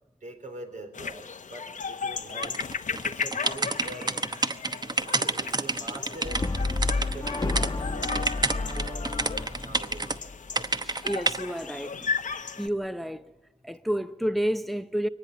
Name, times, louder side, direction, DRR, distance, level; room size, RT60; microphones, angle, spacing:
voice 1, 0.2-2.6 2.9-4.7 5.0-6.4 6.9-9.1 9.6-10.3, right 2 dB, 70° right, 4.2 m, -43 dB
sound 1, 0.9-12.7, left 5 dB, 80° left, 1.0 m, -36 dB
sound 2, 2.4-7.7 8.0-10.2 10.5-11.4, right 3 dB, 30° right, 1.0 m, -29 dB
Brass instrument, 6.2-10.5, left 3 dB, 30° left, 1.2 m, -31 dB
voice 2, 10.8-12.1 12.6-13.2 13.6-15.1, equal, ahead, 0.7 m, -30 dB
24.0 x 19.0 x 9.6 m
wide cardioid pair, 120°, 13 cm